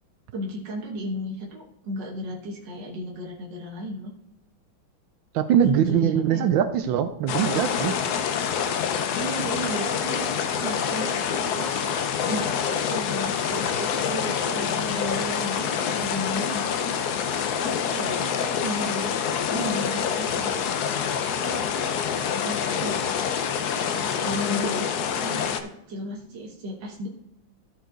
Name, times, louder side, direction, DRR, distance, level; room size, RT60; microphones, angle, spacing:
voice 1, 0.3-4.1 5.5-5.6 5.9-6.4 9.2-11.7 12.3-16.7 17.6-19.1 19.5-20.5 21.4-21.9 22.4-23.0 23.7-27.1, equal, 55° right, -2 dB, 1.7 m, -34 dB
voice 2, 5.3-8.0, right 9 dB, 75° right, 10 dB, 1.2 m, -22 dB
sound 1, 7.3-25.6, left 7 dB, 75° left, 0.9 m, -26 dB
14.0 x 4.8 x 3.9 m, 0.87 s
omnidirectional pair, 2.4 m